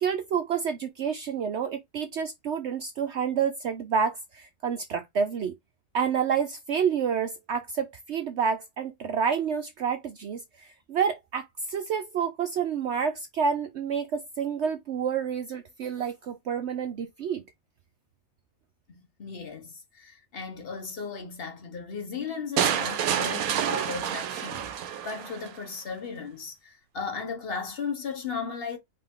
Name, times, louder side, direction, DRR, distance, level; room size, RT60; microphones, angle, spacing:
voice 1, 0.0-5.6 5.9-17.4, right 7 dB, 60° right, 0.8 m, -29 dB
voice 2, 18.9-24.7 25.0-28.8, left 5 dB, 45° left, 1.4 m, -36 dB
sound 1, 22.6-25.6, right 9 dB, 85° right, 1.2 m, -28 dB
5.1 x 2.8 x 3.7 m
omnidirectional pair, 1.5 m